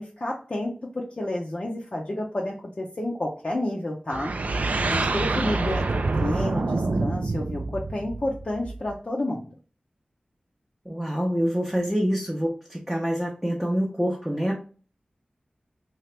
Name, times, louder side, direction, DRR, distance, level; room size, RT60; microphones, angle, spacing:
voice 1, 0.0-4.3 4.9-9.5, left 1 dB, 45° left, -3 dB, 0.5 m, -30 dB
sound 1, 4.1-8.9, right 3 dB, 65° right, 0.3 m, -26 dB
voice 2, 10.8-14.6, equal, 5° right, -2 dB, 0.6 m, -26 dB
2.9 x 2.4 x 3.2 m, 0.38 s
wide cardioid pair, 65°, 3 cm